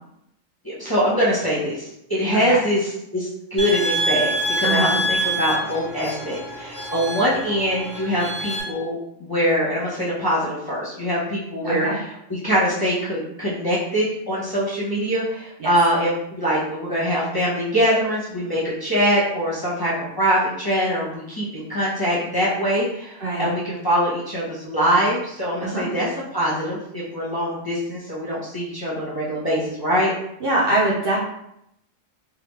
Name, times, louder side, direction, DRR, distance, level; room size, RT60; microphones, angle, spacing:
voice 1, 0.6-30.1, equal, 20° left, -8 dB, 0.6 m, -23 dB
sound 1, 3.6-8.6, right 1 dB, 15° right, 0.9 m, -26 dB
voice 2, 4.6-5.0 11.6-12.0 15.6-15.7 23.2-23.5 25.6-25.9 30.4-31.2, right 2 dB, 60° right, -4 dB, 0.7 m, -23 dB
3.5 x 2.2 x 3.1 m, 0.77 s
omnidirectional pair, 1.3 m